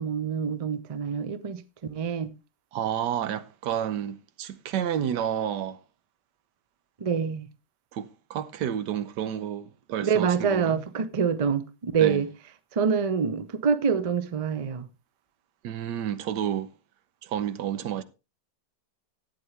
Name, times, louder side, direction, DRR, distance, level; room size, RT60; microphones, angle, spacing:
voice 1, 0.0-2.3 7.0-7.5 10.0-12.3 12.7-14.9, right 6 dB, 60° right, 0.3 m, -26 dB
voice 2, 2.7-5.8 7.9-10.8 12.0-12.2 15.6-16.7 17.2-18.0, right 10 dB, 90° right, 1.4 m, -30 dB
13.0 x 8.7 x 3.2 m
omnidirectional pair, 1.8 m